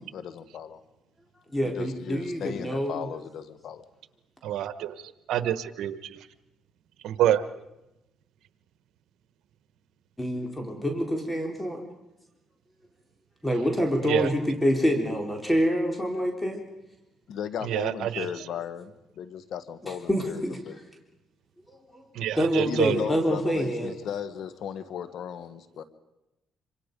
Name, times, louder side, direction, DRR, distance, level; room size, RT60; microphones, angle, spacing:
voice 1, 0.1-0.8 1.6-3.9 17.3-20.8 22.6-25.8, left 8 dB, 75° left, 12 dB, 1.4 m, -36 dB
voice 2, 1.5-3.0 10.2-11.8 13.4-16.6 19.8-20.6 21.7-23.9, equal, 10° left, 2 dB, 3.6 m, -27 dB
voice 3, 4.4-6.3 7.0-7.6 14.0-14.3 17.6-18.3 22.1-22.9, right 12 dB, 80° right, 12 dB, 1.2 m, -27 dB
26.5 x 26.0 x 5.3 m, 0.95 s
cardioid pair, 90°, 0 cm